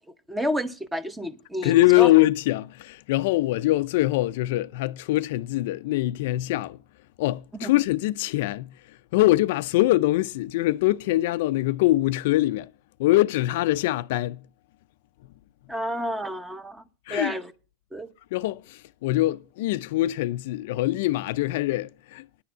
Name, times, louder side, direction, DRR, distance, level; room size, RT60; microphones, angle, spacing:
voice 1, 0.3-2.1 7.5-7.7 15.7-16.8 17.1-17.5 17.9-18.1, equal, 5° right, 0.8 m, -30 dB
voice 2, 1.6-6.8 7.2-8.7 9.1-12.7 13.0-14.4 17.1-17.3 18.3-22.2, left 17 dB, 65° left, 0.4 m, -23 dB
10.0 x 6.7 x 7.3 m
supercardioid pair, 150°, 0 cm